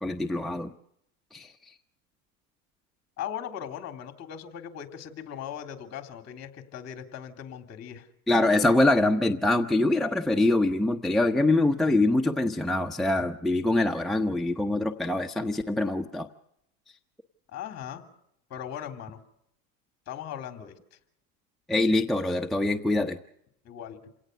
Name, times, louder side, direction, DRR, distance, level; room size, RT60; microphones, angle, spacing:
voice 1, 0.0-0.7 1.3-1.7 8.3-16.3 21.7-23.2, left 2 dB, ahead, 2 dB, 0.8 m, -24 dB
voice 2, 3.2-8.1 17.5-18.1 18.5-19.2 20.1-21.0 23.6-24.1, left 9 dB, 35° left, 7 dB, 3.4 m, -39 dB
28.0 x 18.0 x 6.8 m, 0.75 s
supercardioid pair, 120°, 45 cm